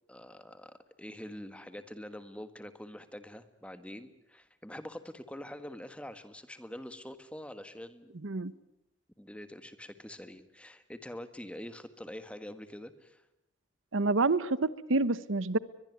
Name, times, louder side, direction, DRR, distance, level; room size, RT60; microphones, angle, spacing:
voice 1, 0.1-8.1 9.2-13.2, left 1 dB, 5° left, 11 dB, 1.5 m, -45 dB
voice 2, 8.2-8.5 13.9-15.6, right 3 dB, 80° right, 17 dB, 1.0 m, -28 dB
22.5 x 22.0 x 9.4 m, 0.87 s
head